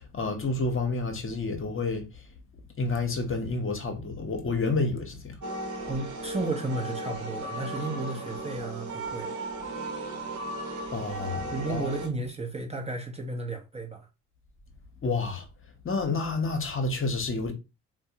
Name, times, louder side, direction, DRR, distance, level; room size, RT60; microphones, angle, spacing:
voice 1, 0.0-2.0 2.8-5.3 10.9-11.9 15.0-15.4 15.8-17.5, left 3 dB, 30° left, 1.1 m, -29 dB
sound 1, 5.4-12.1, right 2 dB, 45° right, 1.1 m, -36 dB
voice 2, 5.8-9.3 11.5-14.1, right 3 dB, 15° right, 0.8 m, -33 dB
4.3 x 2.2 x 2.8 m
figure-of-eight pair, 45°, 40 cm